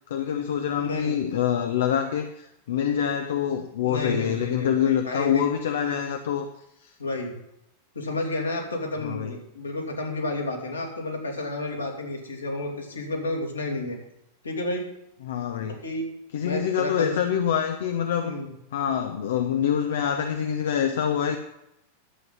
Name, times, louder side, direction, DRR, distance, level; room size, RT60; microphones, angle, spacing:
voice 1, 0.1-6.5 6.8-6.9 9.0-9.3 15.2-15.8 16.3-18.3 18.7-21.4, left 8 dB, 60° left, 6 dB, 0.8 m, -26 dB
voice 2, 0.8-1.2 3.8-5.4 5.9-6.0 7.0-7.4 7.9-14.0 14.4-14.9 15.8-16.1 16.4-17.1 18.2-18.5, left 2 dB, 75° left, 0 dB, 2.6 m, -31 dB
11.5 x 7.9 x 5.6 m, 0.82 s
figure-of-eight pair, 90°, 0 cm